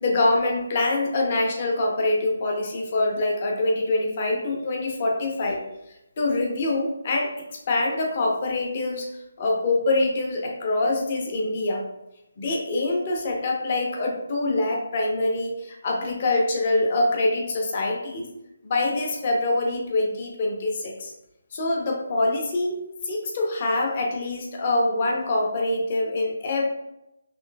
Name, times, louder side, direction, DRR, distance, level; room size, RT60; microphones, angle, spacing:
voice 1, 0.0-5.6 6.2-7.3 7.7-9.1 9.4-11.8 12.4-18.3 18.6-21.1 21.5-22.8 23.0-26.6, left 2 dB, 40° left, 0 dB, 0.8 m, -24 dB
5.4 x 3.2 x 2.2 m, 0.88 s
figure-of-eight pair, 145°, 0 cm